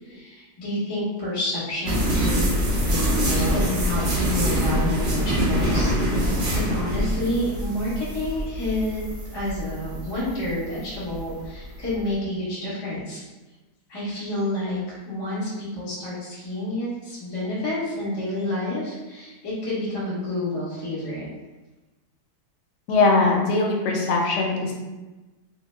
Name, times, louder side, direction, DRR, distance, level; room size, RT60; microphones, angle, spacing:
voice 1, 0.0-2.5 2.9-6.2 6.5-9.1 9.3-13.2 13.9-21.3, left 1 dB, 20° left, -9 dB, 0.8 m, -29 dB
sound 1, 1.9-12.0, equal, 50° right, 1.0 m, -24 dB
voice 2, 22.9-24.7, left 3 dB, 85° left, -1 dB, 1.2 m, -20 dB
3.0 x 2.0 x 3.2 m, 1.2 s
omnidirectional pair, 1.8 m